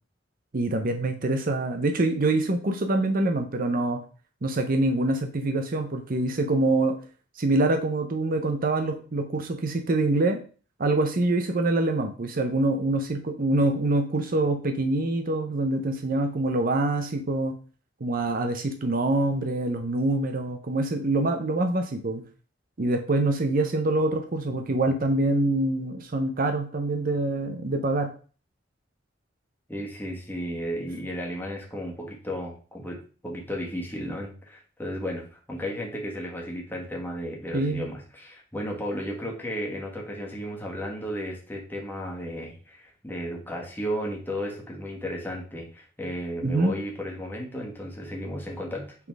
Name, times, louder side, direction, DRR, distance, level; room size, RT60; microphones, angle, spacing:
voice 1, 0.5-4.0 4.4-7.0 7.4-10.4 10.8-17.5 18.0-22.2 22.8-28.1 37.5-37.9 46.4-46.7, right 2 dB, 50° right, 6 dB, 0.7 m, -25 dB
voice 2, 29.7-49.0, equal, 10° left, -1 dB, 1.6 m, -34 dB
5.8 x 4.1 x 4.6 m, 0.39 s
head